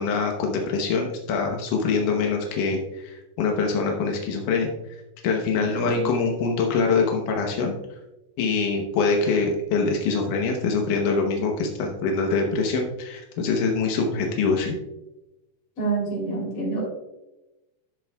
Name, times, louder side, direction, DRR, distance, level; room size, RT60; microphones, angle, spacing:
voice 1, 0.0-4.7 5.2-7.8 8.4-14.8, left 4 dB, 80° left, 1 dB, 1.8 m, -24 dB
voice 2, 5.5-5.9 15.8-16.8, right 4 dB, 35° left, -2 dB, 3.6 m, -28 dB
12.5 x 7.6 x 2.3 m, 0.97 s
omnidirectional pair, 5.1 m